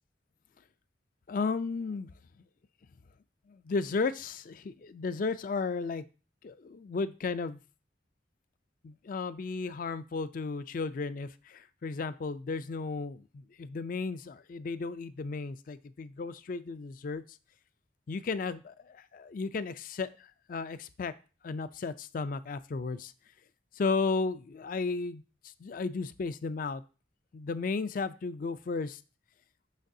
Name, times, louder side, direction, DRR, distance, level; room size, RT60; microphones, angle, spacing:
voice 1, 1.3-2.1 3.5-6.0 6.4-7.6 8.8-17.4 18.1-21.1 21.4-23.1 23.7-26.8 27.3-29.0, left 4 dB, 45° left, 13 dB, 0.4 m, -34 dB
6.4 x 6.0 x 2.7 m, 0.35 s
head